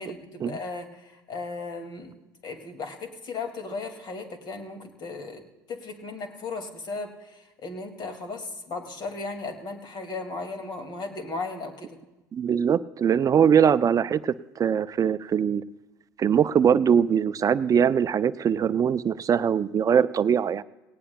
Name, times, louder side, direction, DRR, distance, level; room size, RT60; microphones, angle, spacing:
voice 1, 0.0-2.1 2.4-5.4 5.7-12.0, left 3 dB, 45° left, 5 dB, 2.3 m, -36 dB
voice 2, 12.3-15.6 16.2-20.6, right 8 dB, 35° right, 15 dB, 0.5 m, -22 dB
18.5 x 18.0 x 2.3 m, 1.1 s
hypercardioid pair, 70°, 10 cm